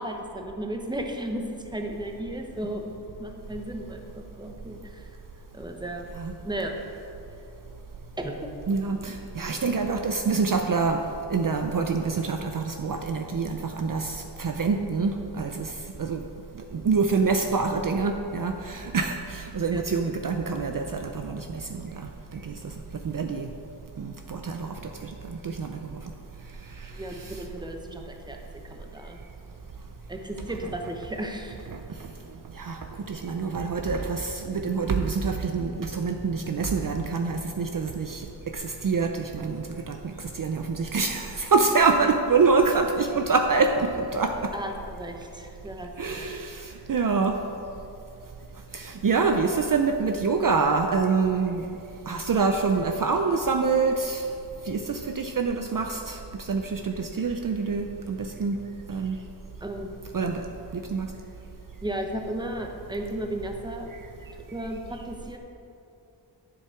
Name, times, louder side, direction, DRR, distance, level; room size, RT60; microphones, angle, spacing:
voice 1, 0.0-2.9 3.2-5.1 5.5-6.1 6.4-6.7 8.2-8.4 19.7-19.8 22.4-22.5 26.9-28.4 28.7-29.2 30.1-31.7 44.5-46.3 59.6-59.9 61.8-63.9 64.5-65.4, right 1 dB, 10° right, 3 dB, 0.9 m, -34 dB
voice 2, 8.7-11.0 11.3-15.7 16.0-16.2 16.7-22.7 23.0-23.5 24.0-26.0 26.7-27.4 31.7-32.1 32.5-32.8 33.1-38.3 38.5-44.5 46.0-47.3 48.7-51.6 52.1-54.3 54.6-58.6 58.9-59.2 60.1-60.4 60.7-61.1, right 4 dB, 50° right, 5 dB, 0.6 m, -26 dB
10.0 x 7.5 x 4.5 m, 2.7 s
wide cardioid pair, 90°, 42 cm